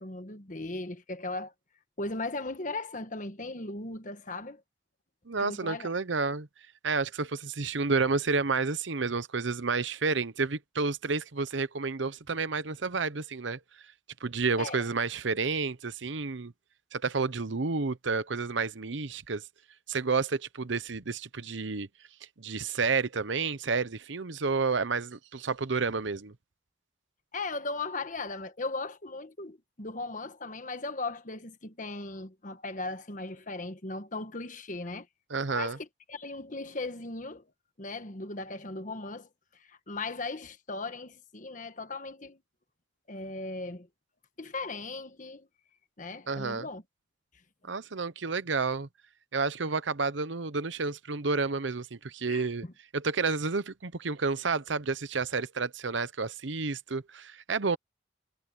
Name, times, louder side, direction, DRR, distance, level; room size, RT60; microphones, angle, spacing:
voice 1, 0.0-1.5 2.0-4.6 5.4-5.9 14.6-14.8 27.3-35.1 35.5-37.5 37.8-42.4 43.1-43.9 44.4-45.5 46.0-46.8 52.3-52.7, left 3 dB, 40° left, 1.4 m, -37 dB
voice 2, 5.3-6.5 6.8-13.6 14.2-16.5 16.9-19.4 19.9-21.9 22.4-26.3 35.3-35.8 46.3-46.7 47.6-48.9 49.3-52.6 52.9-57.8, right 4 dB, 70° right, 0.9 m, -30 dB
head